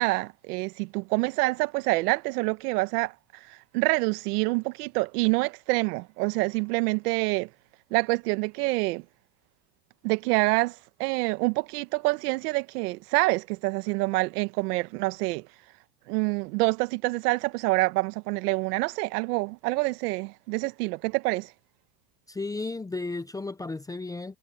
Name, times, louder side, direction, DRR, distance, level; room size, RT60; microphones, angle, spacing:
voice 1, 0.0-3.1 3.5-7.5 7.9-9.0 10.0-15.5 16.1-21.5, right 24 dB, 75° right, 1.3 m, -26 dB
voice 2, 22.3-24.4, left 3 dB, 10° left, 0.6 m, -34 dB
supercardioid pair, 135°, 46 cm